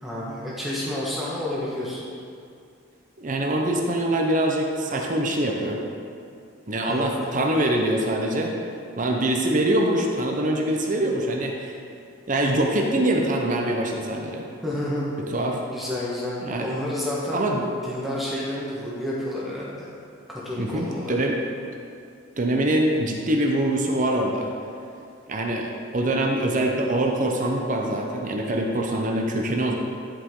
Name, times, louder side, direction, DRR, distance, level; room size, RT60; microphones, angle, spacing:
voice 1, 0.0-2.1 6.9-7.4 14.6-15.1 15.7-17.4 17.8-19.9 20.3-21.3, left 1 dB, ahead, -7 dB, 1.4 m, -30 dB
voice 2, 3.2-5.8 6.7-8.6 9.0-11.8 12.3-14.4 15.1-15.6 16.4-16.7 17.3-17.6 20.5-21.4 22.4-24.5 25.3-29.7, right 1 dB, 40° right, 1 dB, 0.7 m, -24 dB
11.0 x 5.0 x 3.8 m, 2.5 s
head